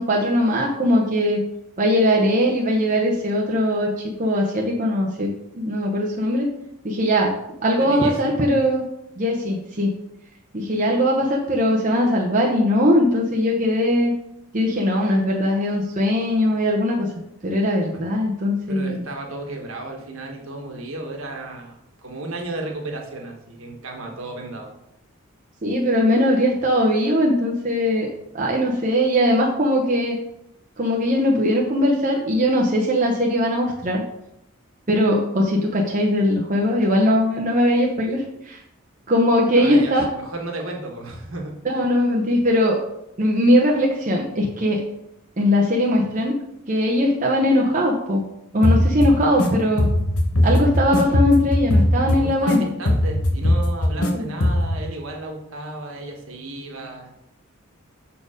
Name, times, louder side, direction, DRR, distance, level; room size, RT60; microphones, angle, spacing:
voice 1, 0.0-1.4 1.8-6.5 6.8-7.3 7.6-8.8 9.2-9.9 10.5-14.1 14.5-17.1 17.4-19.0 25.6-30.2 30.8-34.0 34.9-38.6 39.1-40.0 41.6-42.8 43.2-44.8 45.4-46.3 46.7-48.2 48.5-49.9 50.4-52.7 54.0-54.3, equal, 35° right, -2 dB, 0.8 m, -20 dB
voice 2, 7.8-8.3 17.9-18.0 18.7-24.7 39.5-41.5 52.2-57.1, right 2 dB, 65° right, 1 dB, 1.4 m, -34 dB
sound 1, 48.6-49.5 49.8-52.6 52.9-54.1 54.4-54.8, left 1 dB, 85° left, 1.1 m, -19 dB
6.7 x 4.4 x 5.0 m, 0.81 s
head